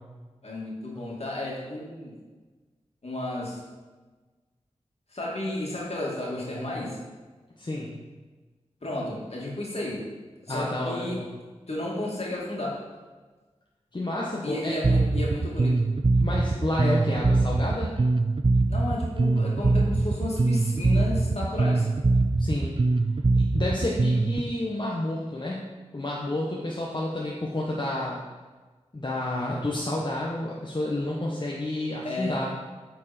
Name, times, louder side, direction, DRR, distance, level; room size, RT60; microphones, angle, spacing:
voice 1, 0.4-2.1 3.0-3.6 5.1-7.0 8.8-10.1 10.5-11.2 11.7-12.9 14.4-15.9 18.7-21.9 32.0-32.4, left 1 dB, 60° left, -4 dB, 2.4 m, -32 dB
voice 2, 7.6-8.0 10.5-11.3 13.9-14.8 16.2-18.0 22.4-22.7 23.5-28.2 28.9-32.5, left 1 dB, 40° left, -4 dB, 1.1 m, -30 dB
Bass guitar, 14.8-24.4, right 3 dB, 45° right, 0.5 m, -23 dB
8.8 x 4.6 x 4.4 m, 1.3 s
cardioid pair, 45°, 12 cm